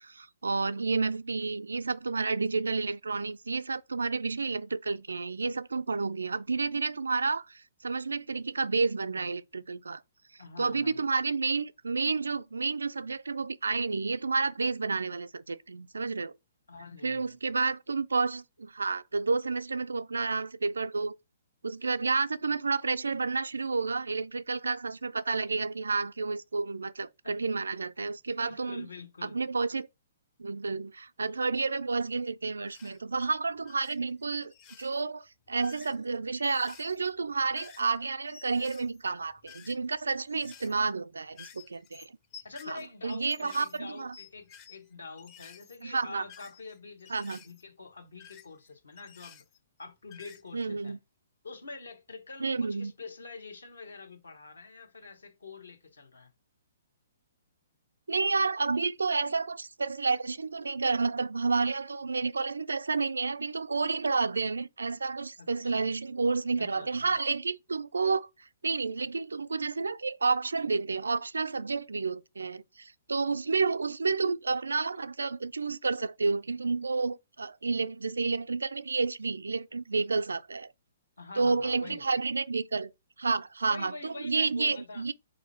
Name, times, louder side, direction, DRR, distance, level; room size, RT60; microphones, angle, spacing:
voice 1, 0.0-10.0 10.6-16.3 17.0-21.2 21.6-28.9 29.2-29.9 30.4-34.5 34.8-42.1 42.7-44.1 45.8-46.2 47.1-47.4 50.5-51.0 52.4-52.9 58.1-80.7 81.4-82.9 83.2-85.1, right 4 dB, 75° right, 0.3 m, -30 dB
voice 2, 10.4-11.0 16.7-17.3 27.2-27.3 28.4-29.3 40.6-40.8 42.4-49.4 49.8-51.0 51.4-56.3 65.4-65.9 66.6-67.1 81.2-82.0 83.7-85.1, left 4 dB, 75° left, 0.9 m, -46 dB
sound 1, 32.6-33.0 33.6-34.0 34.4-35.0 35.5-38.0 38.3-40.0 40.3-40.9 41.3-44.9 45.2-47.6 48.2-49.8 50.1-50.7, left 8 dB, 30° left, 0.5 m, -53 dB
4.3 x 2.6 x 4.3 m
figure-of-eight pair, 120°, 0 cm